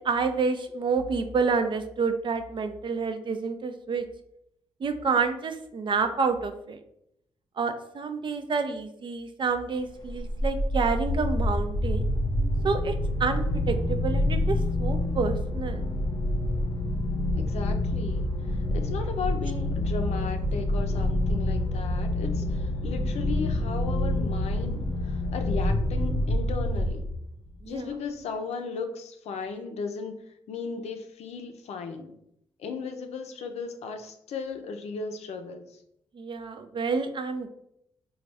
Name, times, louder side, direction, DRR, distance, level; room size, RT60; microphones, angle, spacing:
voice 1, 0.0-4.0 4.8-6.8 7.6-12.1 12.6-15.8 27.6-27.9 36.1-37.5, right 4 dB, 50° right, 7 dB, 0.5 m, -28 dB
sound 1, 10.0-27.4, left 1 dB, 40° left, 0.7 m, -27 dB
voice 2, 17.4-27.0 27.6-30.2 30.5-32.1 32.6-35.8, left 5 dB, 75° left, 6 dB, 0.5 m, -36 dB
4.0 x 2.3 x 3.4 m, 0.76 s
cardioid pair, 70°, 11 cm